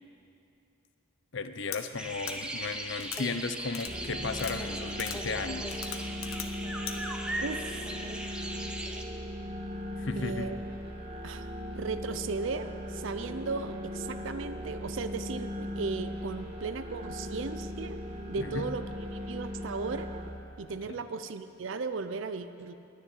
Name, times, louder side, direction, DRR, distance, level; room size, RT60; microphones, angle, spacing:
voice 1, 1.3-5.8 10.0-10.5 18.4-18.7, left 4 dB, 60° left, 10 dB, 0.7 m, -35 dB
sound 1, 1.7-1.8 2.3-2.4 3.0-3.2 3.7-3.9 4.4-4.6 5.0-5.2 5.7-6.5 6.9-7.0, left 10 dB, 90° left, 0.9 m, -38 dB
sound 2, 2.0-9.0, right 1 dB, 5° right, 0.8 m, -38 dB
sound 3, 3.9-20.3, equal, 30° right, 1.4 m, -38 dB
voice 2, 7.4-7.8 10.2-10.6 11.2-11.5 11.8-18.0 18.3-18.8 19.1-20.1 20.6-22.7, right 4 dB, 65° right, 10 dB, 0.5 m, -36 dB
9.9 x 9.8 x 9.9 m, 2.7 s
head